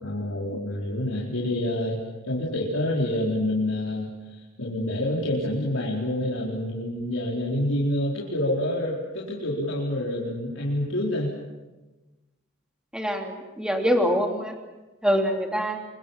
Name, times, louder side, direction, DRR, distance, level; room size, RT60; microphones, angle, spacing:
voice 1, 0.0-2.0 2.2-4.1 4.6-11.3, left 1 dB, 75° left, -4 dB, 4.6 m, -27 dB
voice 2, 12.9-14.5 15.0-15.8, equal, 5° right, 3 dB, 3.0 m, -24 dB
27.5 x 24.0 x 7.3 m, 1.1 s
head